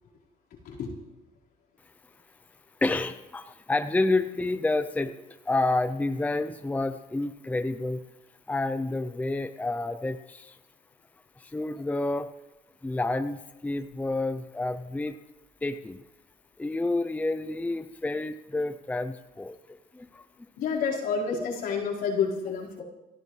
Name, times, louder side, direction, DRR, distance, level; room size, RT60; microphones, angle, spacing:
voice 1, 2.8-5.1 5.5-8.0 8.5-10.5 11.4-12.3 12.8-15.1 15.6-16.0 16.6-19.5 19.9-20.1, left 2 dB, 10° left, 9 dB, 0.6 m, -29 dB
voice 2, 20.6-22.8, left 5 dB, 70° left, -5 dB, 4.7 m, -29 dB
28.5 x 12.0 x 3.3 m, 0.99 s
cardioid pair, 110°, 17 cm